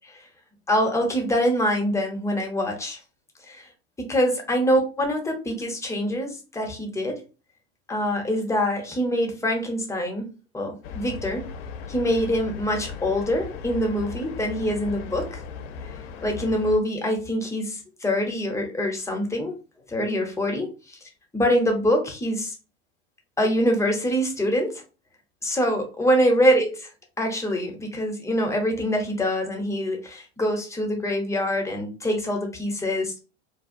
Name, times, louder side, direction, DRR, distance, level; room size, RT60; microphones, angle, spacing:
voice 1, 0.7-3.0 3.4-3.7 4.0-7.2 7.9-10.3 10.5-11.4 11.9-15.4 16.2-19.5 19.9-21.0 21.3-22.5 23.4-24.8 25.4-26.9 27.2-33.2, equal, 10° left, 2 dB, 0.7 m, -24 dB
sound 1, 10.8-16.8, left 5 dB, 65° left, 0.5 m, -37 dB
2.6 x 2.3 x 2.5 m, 0.32 s
hypercardioid pair, 90°, 34 cm